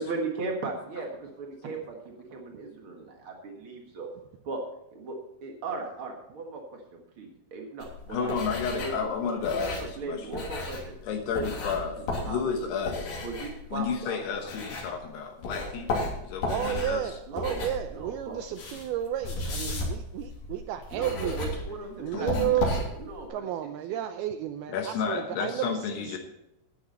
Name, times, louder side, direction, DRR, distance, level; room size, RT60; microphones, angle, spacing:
voice 1, 0.0-4.1 4.4-4.6 4.9-6.6 6.9-8.3 8.7-10.9 11.3-11.5 12.2-14.2 17.3-17.6 17.9-18.4 20.9-23.4, right 3 dB, 65° right, 1 dB, 1.3 m, -37 dB
sound 1, 7.8-15.1 15.4-23.3, left 2 dB, 55° left, 4.7 m, -34 dB
voice 2, 8.1-10.5 11.0-13.2 13.7-17.2 22.1-22.5 24.7-26.2, left 6 dB, 75° left, 4 dB, 3.1 m, -32 dB
voice 3, 16.4-21.6 22.0-22.8 23.3-26.2, right 11 dB, 85° right, 9 dB, 2.2 m, -32 dB
12.5 x 10.0 x 4.3 m, 0.84 s
omnidirectional pair, 5.0 m